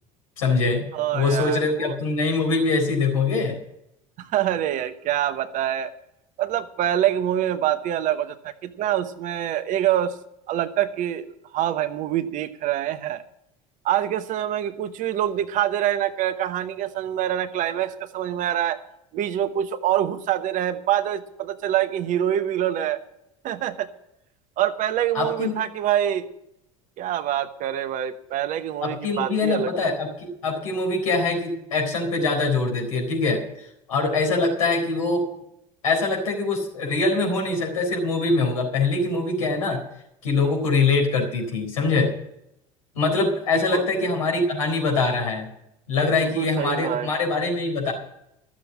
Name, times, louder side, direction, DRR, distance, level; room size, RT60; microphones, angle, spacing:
voice 1, 0.4-3.6 25.1-25.6 28.8-35.2 35.8-39.8 40.2-42.1 42.9-45.5 45.9-47.9, left 3 dB, 75° left, 0 dB, 4.1 m, -23 dB
voice 2, 0.9-2.0 4.2-5.9 6.4-10.1 10.5-13.2 13.8-18.8 19.1-23.0 23.4-23.9 24.6-26.3 27.0-29.9 43.5-43.9 46.2-47.1, right 11 dB, 45° right, 11 dB, 0.9 m, -25 dB
13.0 x 7.4 x 8.5 m, 0.81 s
figure-of-eight pair, 70°, 18 cm